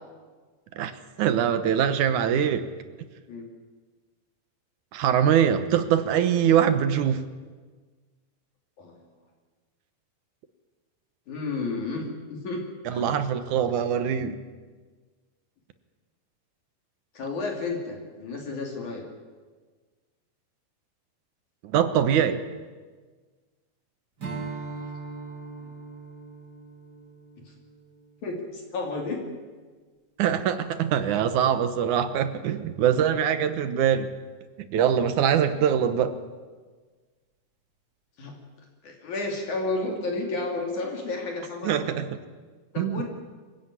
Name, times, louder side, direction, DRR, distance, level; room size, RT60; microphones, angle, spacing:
voice 1, 1.2-2.7 4.9-7.2 12.9-14.4 21.6-22.4 30.2-34.1 34.6-36.2 41.6-42.1 42.8-43.0, right 9 dB, 65° right, 10 dB, 2.3 m, -23 dB
voice 2, 11.3-12.6 12.9-13.1 17.1-19.0 28.2-29.2 30.3-30.4 38.2-38.3 38.8-41.9 42.7-43.0, left 3 dB, 55° left, 1 dB, 4.1 m, -32 dB
Strum, 24.2-28.9, right 4 dB, 30° right, 2.8 m, -40 dB
24.0 x 16.0 x 9.7 m, 1.4 s
omnidirectional pair, 4.3 m